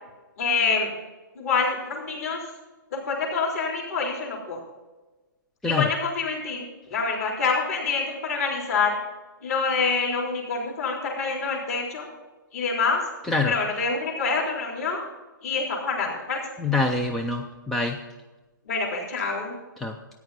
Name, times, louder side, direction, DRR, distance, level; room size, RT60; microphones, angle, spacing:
voice 1, 0.4-0.9 1.4-2.4 2.9-4.6 5.6-8.9 9.4-12.1 12.5-13.0 13.5-15.0 15.4-16.4 18.7-19.5, left 4 dB, 45° left, -1 dB, 3.7 m, -26 dB
voice 2, 16.6-18.0 19.8-19.9, left 3 dB, ahead, 3 dB, 0.3 m, -25 dB
13.5 x 9.4 x 4.1 m, 1.2 s
hypercardioid pair, 160°, 11 cm